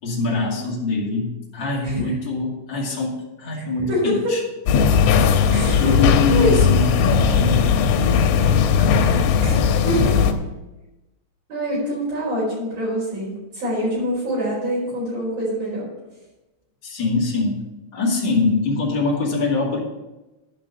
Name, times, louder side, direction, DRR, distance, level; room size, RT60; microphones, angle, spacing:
voice 1, 0.0-4.4 5.8-9.4 16.8-17.6 17.9-19.8, left 3 dB, 35° left, -4 dB, 2.2 m, -24 dB
voice 2, 3.9-4.4 5.5-5.9 6.3-6.6 9.4-9.5 9.8-10.2 11.5-15.9, equal, 50° right, -8 dB, 6.2 m, -25 dB
sound 1, 4.7-10.3, left 6 dB, 90° left, 3.2 m, -17 dB
11.5 x 5.4 x 6.9 m, 1.0 s
omnidirectional pair, 5.3 m